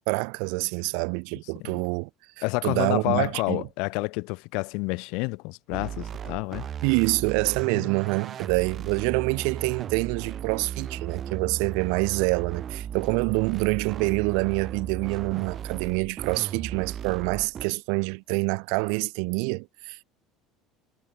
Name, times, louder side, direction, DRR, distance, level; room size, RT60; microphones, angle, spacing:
voice 1, 0.1-2.1 2.6-3.6 6.8-20.0, right 40 dB or more, 80° right, 0.8 m, -26 dB
voice 2, 2.4-6.7 7.7-7.9, left 29 dB, 75° left, 0.8 m, -29 dB
sound 1, 5.7-17.7, right 9 dB, 35° right, 1.1 m, -36 dB
cardioid pair, 150°, 0 cm